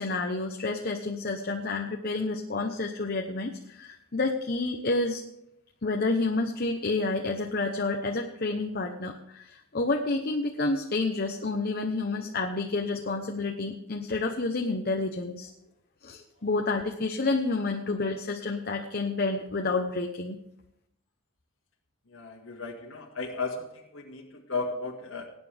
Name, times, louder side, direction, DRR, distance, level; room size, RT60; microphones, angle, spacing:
voice 1, 0.0-5.2 5.8-15.5 16.0-20.4, left 3 dB, 45° left, 3 dB, 0.9 m, -29 dB
voice 2, 22.1-25.3, left 3 dB, 65° left, 0 dB, 2.0 m, -35 dB
19.0 x 9.4 x 3.5 m, 0.80 s
head